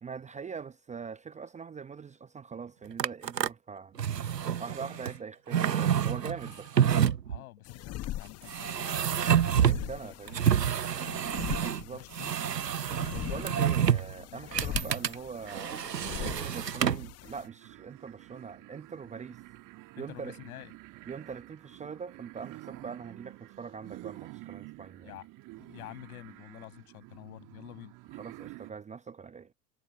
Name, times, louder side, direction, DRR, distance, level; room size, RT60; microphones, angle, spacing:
voice 1, 0.0-4.0 4.6-6.7 9.4-10.4 11.5-12.1 13.1-15.8 16.2-19.4 20.0-20.3 21.1-25.2 28.2-29.5, right 6 dB, 15° right, 0.8 m, -42 dB
sound 1, 3.0-3.5 4.0-5.2 5.5-7.4 8.5-9.9 10.3-11.8 12.1-14.1 14.5-15.1 15.5-17.1, right 9 dB, 85° right, 0.9 m, -28 dB
voice 2, 7.3-9.3 9.8-10.3 10.8-11.2 12.0-12.3 13.5-13.6 14.3-14.6 20.0-20.7 25.0-25.3 25.6-27.9, left 17 dB, 60° left, 6.3 m, -48 dB
sound 2, 7.6-17.5, left 14 dB, 30° left, 1.2 m, -42 dB
sound 3, 17.2-28.7, right 20 dB, 40° right, 1.9 m, -49 dB
figure-of-eight pair, 85°, 48 cm